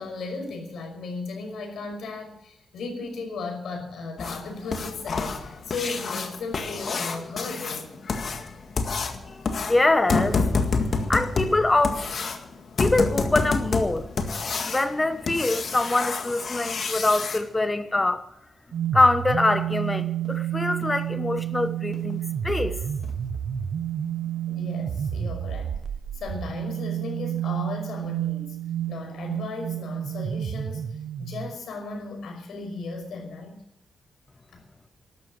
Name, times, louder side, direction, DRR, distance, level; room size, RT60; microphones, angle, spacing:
voice 1, 0.0-7.9 24.5-25.8 26.1-28.6 28.9-33.6 34.5-34.6, left 3 dB, 85° left, 5.5 m, -36 dB
sound 1, 4.2-17.4 19.7-19.8 20.2-20.3 20.8-20.9 21.4-21.5 21.9-22.1 22.5-22.6 23.0-23.1, left 4 dB, 50° left, 1.9 m, -28 dB
voice 2, 9.7-10.4 11.1-12.0 12.8-14.1 14.7-18.2 18.9-22.8, left 2 dB, 15° left, 1.0 m, -24 dB
sound 2, 18.7-31.6, right 10 dB, 80° right, 0.7 m, -30 dB
12.5 x 12.5 x 7.8 m
wide cardioid pair, 155°, 0 cm